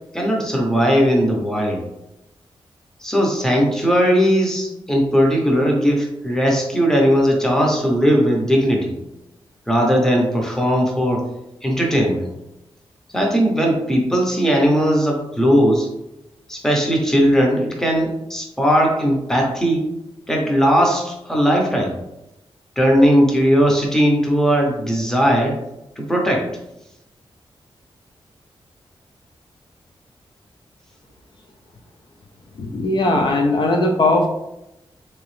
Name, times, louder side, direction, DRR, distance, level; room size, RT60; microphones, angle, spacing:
voice 1, 0.1-1.8 3.0-8.9 9.7-11.3 11.6-12.3 13.1-15.9 16.5-19.9 20.3-21.9 22.8-25.6 26.0-26.5, equal, 5° left, 0 dB, 0.7 m, -18 dB
voice 2, 32.6-34.3, left 2 dB, 50° left, 2 dB, 0.4 m, -18 dB
3.5 x 2.9 x 3.1 m, 0.89 s
wide cardioid pair, 140°, 10 cm